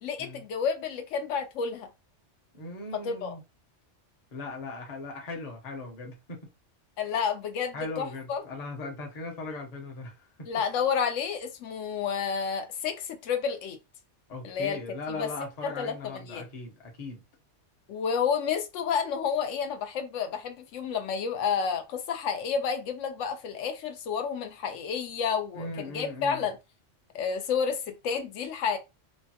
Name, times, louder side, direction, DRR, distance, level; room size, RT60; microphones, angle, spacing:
voice 1, 0.0-1.9 3.0-3.4 7.0-8.4 10.5-13.8 14.4-14.8 15.2-15.3 15.6-16.4 17.9-26.6 27.1-28.8, left 6 dB, 90° left, 1.0 m, -30 dB
voice 2, 2.5-3.4 4.3-6.5 7.7-10.5 14.3-17.2 25.5-26.5, left 3 dB, 40° left, 0.8 m, -39 dB
3.1 x 2.2 x 2.7 m
omnidirectional pair, 1.2 m